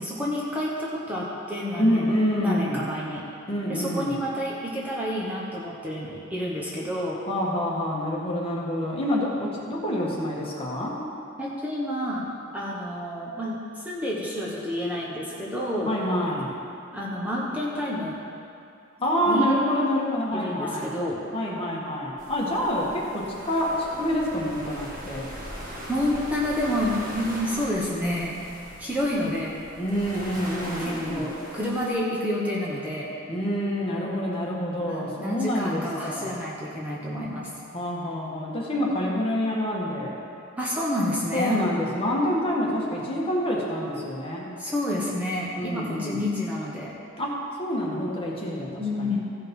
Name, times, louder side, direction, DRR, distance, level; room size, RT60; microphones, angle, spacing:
voice 1, 0.0-3.2 3.7-7.2 11.4-12.3 12.5-15.9 16.9-18.2 19.3-19.5 20.3-21.2 25.9-28.3 28.8-29.6 30.8-33.1 34.8-37.5 40.6-41.6 44.6-46.9 48.8-49.2, left 1 dB, 10° right, -6 dB, 1.1 m, -29 dB
voice 2, 1.7-2.8 3.5-4.1 7.3-11.0 15.8-16.5 19.0-20.9 21.3-23.7 24.0-25.3 29.8-31.3 33.3-36.3 37.7-40.2 41.3-44.5 45.6-46.2 47.2-47.3 47.6-49.2, equal, 30° left, -4 dB, 1.8 m, -27 dB
sound 1, 22.2-31.9, equal, 45° right, 1.8 m, -40 dB
15.0 x 5.5 x 5.4 m, 2.5 s
head